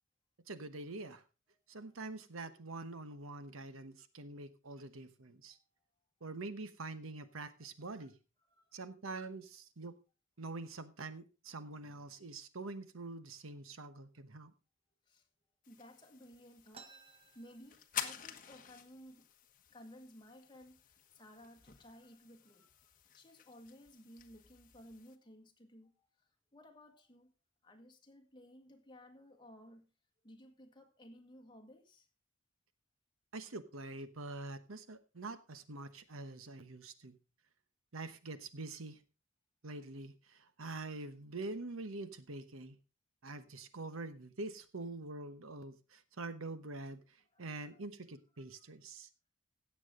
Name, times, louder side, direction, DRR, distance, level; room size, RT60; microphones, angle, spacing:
voice 1, 0.5-1.2 1.7-5.6 6.2-8.2 8.7-10.0 10.4-14.5 33.3-37.2 37.9-39.0 39.6-42.8 43.2-49.1, right 2 dB, 80° right, 12 dB, 1.1 m, -45 dB
voice 2, 8.5-8.8 15.1-15.3 15.7-16.9 17.3-19.3 19.7-27.3 27.6-29.9 30.2-32.1 47.3-47.9 48.3-48.6, left 1 dB, 20° left, 4 dB, 1.8 m, -57 dB
sound 1, 15.6-25.2, left 9 dB, 40° left, 1.2 m, -49 dB
sound 2, 16.7-18.3 18.7-18.8 19.0-19.6 20.2-20.4 21.1-21.3 21.7-22.2, right 5 dB, 25° right, 0.7 m, -58 dB
16.5 x 7.5 x 3.7 m, 0.31 s
head